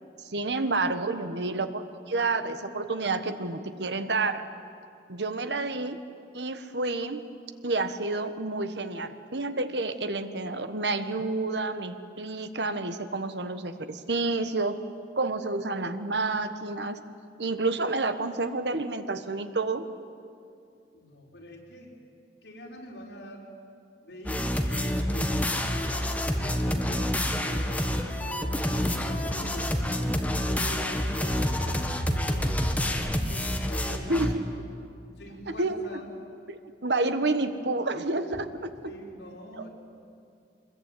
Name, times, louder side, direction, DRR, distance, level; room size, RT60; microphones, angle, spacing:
voice 1, 0.2-4.4 5.1-6.0 6.3-7.2 7.6-14.8 15.2-17.0 17.4-19.8 34.1-34.4 35.6-35.8 36.5-38.5, right 3 dB, 75° right, 10 dB, 1.4 m, -29 dB
voice 2, 20.9-21.9 22.4-23.5 24.0-24.5 25.0-29.8 30.3-32.5 32.8-34.4 35.2-36.1 38.3-38.5 38.8-39.7, equal, 80° left, -2 dB, 5.2 m, -44 dB
sound 1, 24.2-34.3, left 1 dB, 10° left, 1.6 m, -28 dB
25.0 x 21.5 x 9.2 m, 2.5 s
head